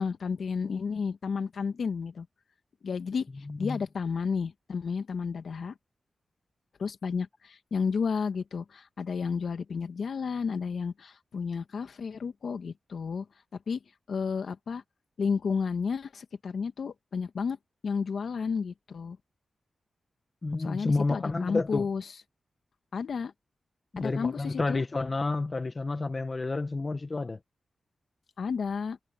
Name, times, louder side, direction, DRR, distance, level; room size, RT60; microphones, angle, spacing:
voice 1, 0.0-2.3 2.8-3.3 3.6-5.8 6.8-13.3 13.7-13.8 14.1-14.8 15.2-17.6 17.8-19.2 20.6-22.0 22.9-23.3 24.0-24.8 28.4-29.0, left 5 dB, 75° left, 1.9 m, -32 dB
voice 2, 3.5-3.8 20.4-21.9 23.9-27.4, left 3 dB, 35° left, 1.4 m, -30 dB
cardioid pair, 70°, 0 cm